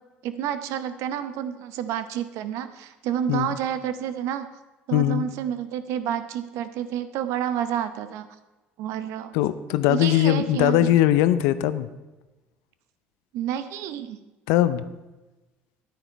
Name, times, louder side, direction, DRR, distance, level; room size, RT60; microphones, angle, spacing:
voice 1, 0.2-4.5 4.9-8.3 8.8-9.3 9.9-10.9 13.3-14.2, right 10 dB, 70° right, 11 dB, 0.8 m, -29 dB
voice 2, 4.9-5.3 9.3-11.9 14.5-14.8, left 13 dB, 75° left, 14 dB, 0.5 m, -20 dB
10.0 x 9.6 x 4.5 m, 1.1 s
hypercardioid pair, 65°, 5 cm